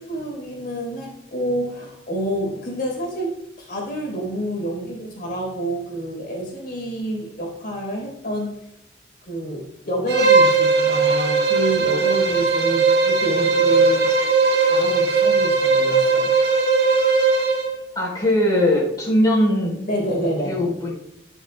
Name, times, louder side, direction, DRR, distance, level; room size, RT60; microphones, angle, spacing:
voice 1, 0.0-8.5 9.2-14.1 14.6-16.3 19.9-20.6, right 1 dB, 50° left, -1 dB, 4.4 m, -28 dB
Bowed string instrument, 10.1-17.8, right 4 dB, 60° right, 2.0 m, -18 dB
voice 2, 17.9-19.8 20.4-21.0, left 1 dB, 20° left, -4 dB, 4.5 m, -20 dB
20.5 x 7.5 x 2.4 m, 0.83 s
head